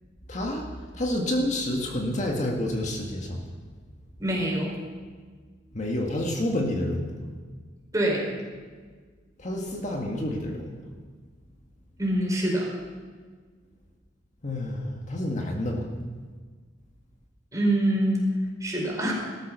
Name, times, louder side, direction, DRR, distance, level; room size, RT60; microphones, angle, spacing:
voice 1, 0.3-0.7 0.9-3.4 5.7-7.2 9.4-10.8 14.4-15.9, left 1 dB, 40° left, 0 dB, 1.8 m, -29 dB
voice 2, 4.2-4.7 7.9-8.3 12.0-12.7 17.5-18.2 18.6-19.1, right 1 dB, 20° right, -2 dB, 4.8 m, -25 dB
17.0 x 13.5 x 6.2 m, 1.5 s
head